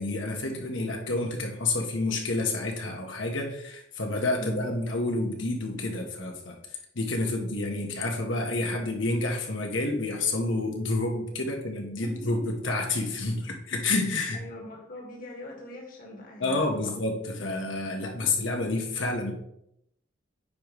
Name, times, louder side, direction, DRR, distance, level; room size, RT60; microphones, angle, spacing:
voice 1, 0.0-6.6 6.9-14.4 16.4-19.3, left 2 dB, 80° left, 2 dB, 1.4 m, -29 dB
voice 2, 14.3-17.0 18.2-18.3, equal, 45° left, -1 dB, 1.9 m, -42 dB
9.0 x 5.3 x 3.2 m, 0.77 s
head